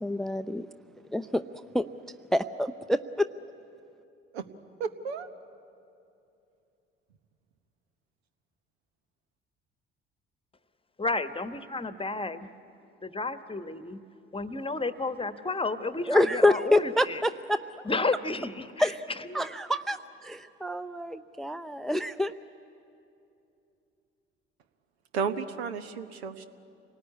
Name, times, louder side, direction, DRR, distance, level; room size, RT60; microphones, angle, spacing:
voice 1, 0.0-0.7 1.1-1.4 1.7-1.9 2.3-3.3 16.1-17.6 18.8-19.0 19.3-22.3, left 1 dB, ahead, 12 dB, 0.5 m, -27 dB
voice 2, 4.8-5.3 25.1-26.4, right 6 dB, 75° right, 10 dB, 1.1 m, -32 dB
voice 3, 11.0-12.5 13.0-14.0 14.3-17.2 17.8-19.5, left 3 dB, 15° left, 12 dB, 1.2 m, -32 dB
27.5 x 19.0 x 9.6 m, 2.7 s
figure-of-eight pair, 50°, 32 cm